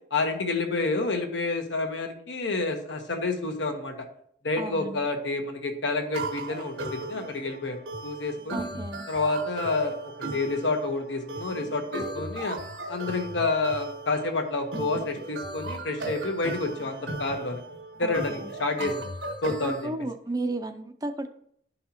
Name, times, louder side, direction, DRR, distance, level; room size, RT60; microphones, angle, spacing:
voice 1, 0.1-3.9 4.4-8.7 9.1-10.0 10.3-12.6 12.9-17.6 18.0-19.0 19.4-19.9, left 3 dB, 80° left, 4 dB, 1.2 m, -29 dB
voice 2, 4.6-5.0 8.5-9.1 18.0-18.5 19.6-21.3, right 2 dB, 20° right, 7 dB, 0.5 m, -33 dB
sound 1, 6.1-19.9, right 2 dB, 80° right, 1.1 m, -37 dB
11.5 x 5.5 x 2.9 m, 0.66 s
head